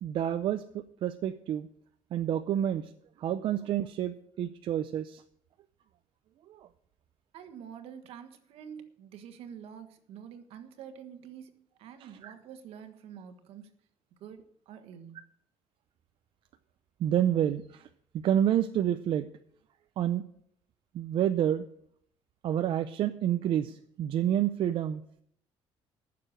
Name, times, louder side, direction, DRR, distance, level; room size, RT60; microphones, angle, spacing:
voice 1, 0.0-1.7 2.1-2.9 3.2-5.2 6.5-6.7 12.2-12.3 17.0-17.9 18.2-19.3 20.0-20.2 20.9-21.7 22.4-25.0, right 10 dB, 55° right, 8 dB, 0.6 m, -29 dB
voice 2, 7.3-13.7 14.2-15.3, right 8 dB, 75° right, 8 dB, 1.4 m, -47 dB
15.0 x 6.8 x 6.5 m, 0.68 s
cardioid pair, 150°, 10 cm